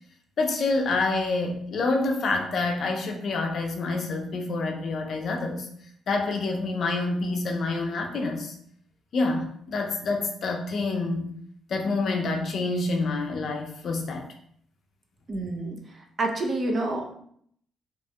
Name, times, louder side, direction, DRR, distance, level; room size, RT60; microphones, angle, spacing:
voice 1, 0.4-5.7 6.1-8.5 9.1-11.3 11.7-14.3, left 3 dB, 60° left, 2 dB, 0.5 m, -27 dB
voice 2, 15.3-17.1, right 2 dB, 40° right, 2 dB, 0.5 m, -29 dB
2.9 x 2.6 x 2.2 m, 0.65 s
cardioid pair, 90°, 0 cm